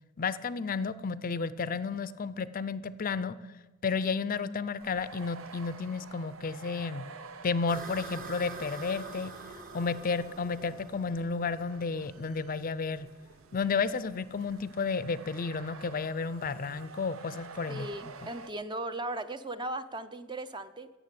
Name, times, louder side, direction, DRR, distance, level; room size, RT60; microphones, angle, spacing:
voice 1, 0.2-3.4 3.8-7.0 7.4-9.3 9.7-13.1 13.5-17.9, left 5 dB, 45° left, 16 dB, 0.5 m, -32 dB
sound 1, 4.8-18.5, right 4 dB, 75° right, 0.8 m, -50 dB
sound 2, 7.7-16.8, right 3 dB, 45° right, 1.8 m, -47 dB
voice 2, 17.7-20.9, right 2 dB, 20° right, 11 dB, 0.6 m, -37 dB
15.5 x 7.5 x 8.4 m, 1.2 s
head